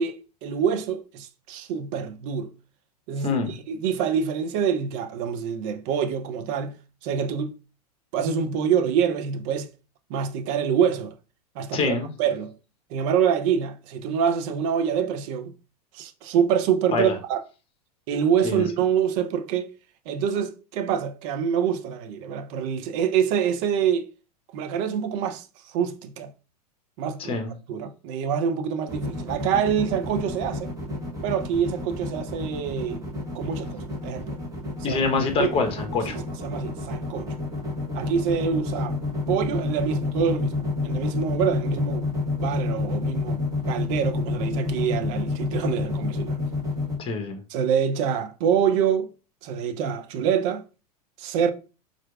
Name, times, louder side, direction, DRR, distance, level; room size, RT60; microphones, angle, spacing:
voice 1, 0.0-2.5 3.1-6.8 7.0-7.5 8.1-9.7 10.1-11.1 11.6-12.6 12.9-15.5 15.9-17.4 18.1-19.7 20.1-24.1 24.5-26.3 27.0-27.3 27.7-30.7 31.2-33.0 33.3-34.4 34.8-35.0 35.4-35.7 36.1-37.3 37.9-39.0 39.3-43.4 43.7-46.4 47.5-49.1 49.4-50.6 51.2-51.5, right 7 dB, 55° right, 0.5 m, -26 dB
voice 2, 3.2-3.5 11.7-12.1 16.9-17.1 18.4-18.7 27.2-27.5 34.8-36.2 47.0-47.4, left 4 dB, 25° left, 0.9 m, -25 dB
sound 1, 28.9-47.0, left 3 dB, 15° right, 1.0 m, -28 dB
4.3 x 2.4 x 2.3 m
hypercardioid pair, 110°, 20 cm